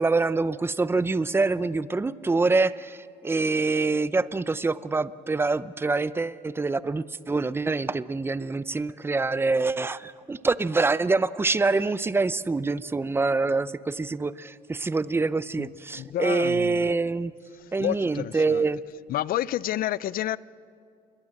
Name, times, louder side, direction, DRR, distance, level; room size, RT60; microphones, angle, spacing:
voice 1, 0.0-17.3 17.7-18.8, right 3 dB, 15° right, 0.7 m, -25 dB
voice 2, 15.9-16.9 17.8-18.6 19.1-20.4, left 13 dB, 60° left, 0.6 m, -29 dB
28.0 x 22.5 x 7.7 m
cardioid pair, 110°, 17 cm